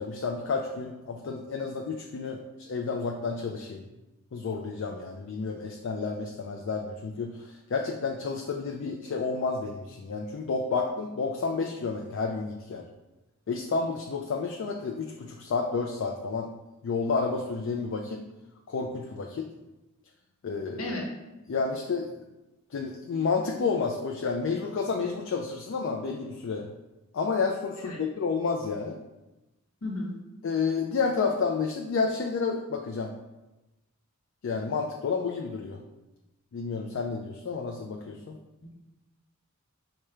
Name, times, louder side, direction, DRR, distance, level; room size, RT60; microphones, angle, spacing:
voice 1, 0.0-3.8 4.3-12.8 13.5-16.5 16.8-18.2 18.7-19.5 20.4-20.9 21.5-22.1 22.7-26.7 27.1-29.0 30.4-33.1 34.4-35.8 36.5-38.4, left 4 dB, 60° left, 2 dB, 0.4 m, -30 dB
voice 2, 29.8-30.1 38.6-38.7, left 1 dB, 85° left, 0 dB, 1.0 m, -33 dB
4.9 x 2.2 x 4.4 m, 1.0 s
head